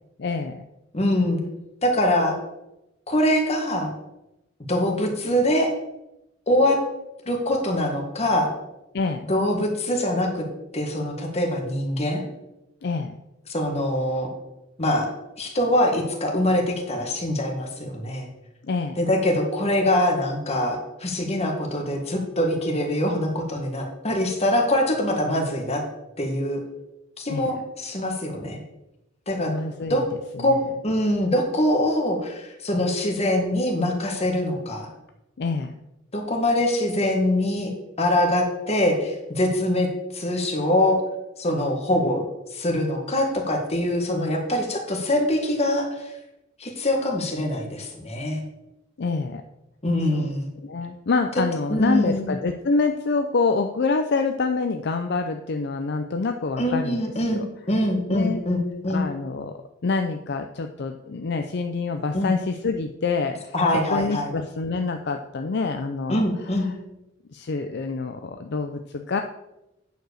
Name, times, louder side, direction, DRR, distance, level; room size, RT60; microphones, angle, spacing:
voice 1, 0.2-0.7 8.9-9.3 12.8-13.1 18.6-19.0 27.3-27.5 29.5-30.0 30.4-30.6 35.4-35.7 49.0-49.4 50.1-50.3 50.6-57.0 58.1-58.4 58.9-59.5 59.8-63.5 63.9-66.3 67.3-69.2, left 4 dB, 60° left, 5 dB, 0.5 m, -26 dB
voice 2, 0.9-1.4 1.8-2.4 3.1-3.9 4.7-5.7 6.5-6.8 7.3-8.5 9.3-10.4 10.7-12.2 13.5-14.3 14.8-15.1 15.4-18.3 19.0-25.8 26.2-26.6 27.2-28.6 29.3-29.5 29.9-30.0 30.4-34.9 36.1-37.7 38.0-41.0 41.4-42.2 42.5-46.1 46.6-48.4 49.8-50.5 51.7-52.3 56.6-59.1 62.1-62.4 63.5-64.3 66.1-66.7, left 1 dB, 35° left, 2 dB, 1.8 m, -23 dB
9.1 x 4.8 x 6.5 m, 0.92 s
head